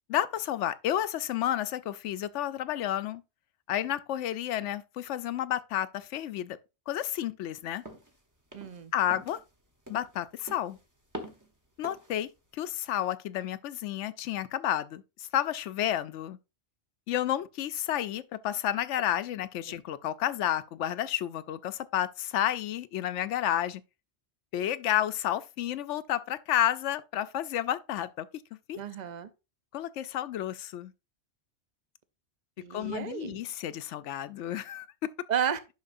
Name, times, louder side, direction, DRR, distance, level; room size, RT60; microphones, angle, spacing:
voice 1, 0.1-3.2 3.7-6.6 6.9-7.8 8.9-9.4 9.9-10.8 11.8-16.4 17.1-23.8 24.5-28.3 28.7-28.8 29.7-30.9 32.7-35.1, left 11 dB, 90° left, 0.9 m, -31 dB
sound 1, 7.9-8.1 8.5-8.8 9.1-9.4 9.9-10.2 10.5-10.8 11.1-11.5 11.8-12.2, equal, 15° right, 1.0 m, -43 dB
voice 2, 8.5-8.9 28.7-29.3 32.6-33.4 35.3-35.6, right 8 dB, 45° right, 0.7 m, -32 dB
10.5 x 5.9 x 2.6 m
omnidirectional pair, 1.2 m